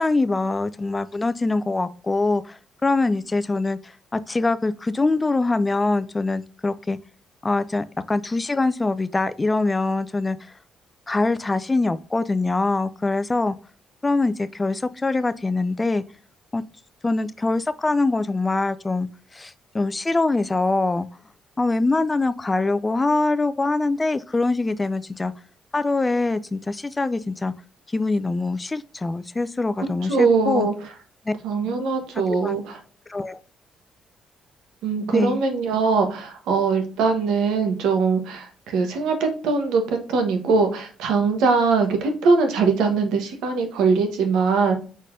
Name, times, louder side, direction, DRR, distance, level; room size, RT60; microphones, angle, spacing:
voice 1, 0.0-7.0 7.4-10.4 11.1-13.6 14.0-16.0 16.5-16.6 17.0-19.1 19.3-21.1 21.6-25.3 25.7-27.5 27.9-30.7 31.3-31.4 31.6-31.7 32.3-32.6 33.1-33.4 35.1-35.4, left 3 dB, 20° left, 0.4 m, -23 dB
voice 2, 30.1-30.7 31.4-32.8 34.8-44.7, right 4 dB, 90° right, 1.1 m, -21 dB
4.9 x 4.2 x 2.6 m
cardioid pair, 90°, 0 cm